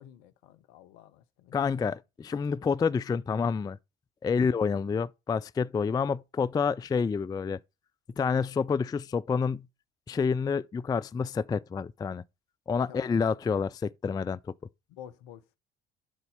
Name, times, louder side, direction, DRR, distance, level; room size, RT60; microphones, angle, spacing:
voice 1, 0.0-1.9 12.8-13.3 14.9-15.5, left 10 dB, 65° left, 0.9 m, -50 dB
voice 2, 1.5-3.8 4.2-7.6 8.2-9.7 10.1-12.2 12.7-14.5, left 5 dB, 15° left, 0.4 m, -28 dB
11.0 x 4.1 x 5.5 m
figure-of-eight pair, 55°, 30 cm